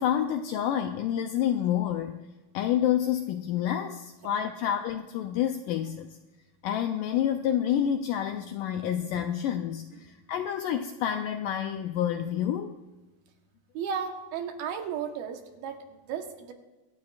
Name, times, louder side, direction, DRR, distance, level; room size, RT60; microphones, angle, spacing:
voice 1, 0.0-2.2 2.5-6.1 6.6-12.7, left 10 dB, 85° left, 6 dB, 1.9 m, -28 dB
voice 2, 13.7-16.5, right 7 dB, 80° right, 5 dB, 2.9 m, -34 dB
25.0 x 12.5 x 2.4 m, 1.2 s
omnidirectional pair, 4.4 m